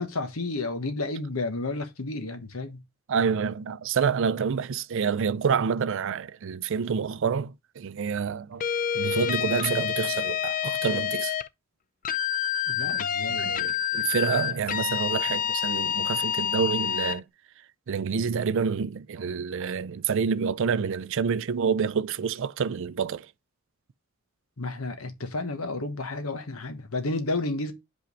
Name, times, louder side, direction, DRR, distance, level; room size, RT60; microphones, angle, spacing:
voice 1, 0.0-2.8 12.7-13.5 24.6-27.7, left 2 dB, 80° left, 1.3 m, -31 dB
voice 2, 3.1-8.6 8.9-11.3 13.3-17.2 17.9-23.3, right 6 dB, 60° right, 0.4 m, -28 dB
sound 1, 8.6-11.5 12.0-17.2, left 9 dB, 40° left, 0.4 m, -28 dB
5.2 x 4.5 x 5.2 m
head